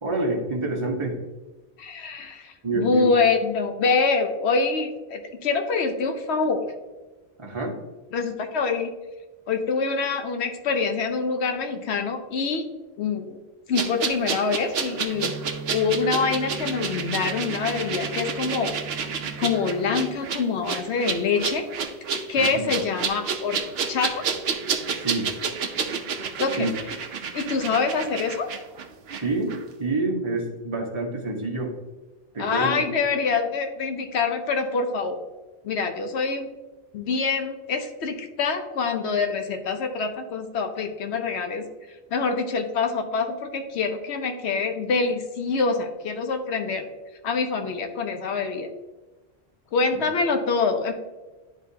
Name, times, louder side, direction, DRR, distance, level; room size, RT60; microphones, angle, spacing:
voice 1, 0.0-1.2 2.6-3.1 7.4-7.7 22.3-22.6 24.9-25.3 26.6-26.7 29.2-31.7 32.3-32.9 49.9-50.1, right 2 dB, 30° right, 0 dB, 1.2 m, -27 dB
voice 2, 1.8-6.7 8.1-8.9 9.5-12.7 13.0-13.4 13.7-15.3 15.7-18.7 19.4-21.6 22.3-23.6 23.9-24.2 26.4-26.7 27.3-28.5 32.4-35.2 35.6-36.5 36.9-41.6 42.1-46.9 47.2-48.7 49.7-50.9, left 4 dB, 85° left, 5 dB, 1.0 m, -25 dB
sound 1, 13.7-29.2 29.5-29.6, right 5 dB, 70° right, 0.9 m, -30 dB
sound 2, 15.1-20.1, right 4 dB, 35° left, 1.8 m, -38 dB
11.0 x 3.8 x 2.7 m, 1.2 s
omnidirectional pair, 1.1 m